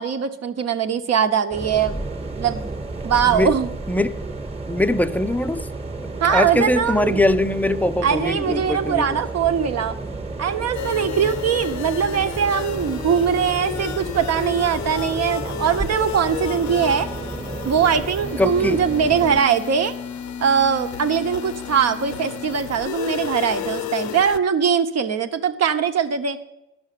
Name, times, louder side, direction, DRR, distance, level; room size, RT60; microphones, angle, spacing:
voice 1, 0.0-2.0 2.4-2.6 3.0-3.7 6.2-7.2 8.0-10.0 10.4-17.1 17.6-19.9 20.4-26.4, right 7 dB, 55° right, 1.1 m, -21 dB
sound 1, 1.5-19.4, right 3 dB, 20° right, 1.3 m, -32 dB
voice 2, 4.7-5.7 6.0-9.2 18.4-18.8, left 1 dB, 5° left, 0.5 m, -22 dB
sound 2, 10.7-24.4, left 9 dB, 70° left, 0.7 m, -32 dB
11.0 x 6.3 x 8.4 m
cardioid pair, 90°, 30 cm